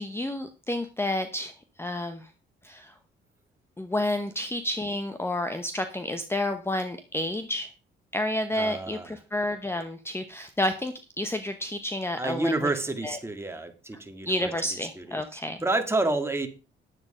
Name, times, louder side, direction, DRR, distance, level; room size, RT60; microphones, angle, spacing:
voice 1, 0.0-2.3 2.6-2.9 3.8-7.7 8.1-12.7 13.0-13.2 14.2-15.6, left 1 dB, 10° left, 9 dB, 1.0 m, -30 dB
voice 2, 8.5-9.1 12.2-14.5 15.0-16.5, right 2 dB, 10° right, 6 dB, 2.1 m, -29 dB
10.0 x 8.0 x 5.0 m, 0.33 s
cardioid pair, 90°, 20 cm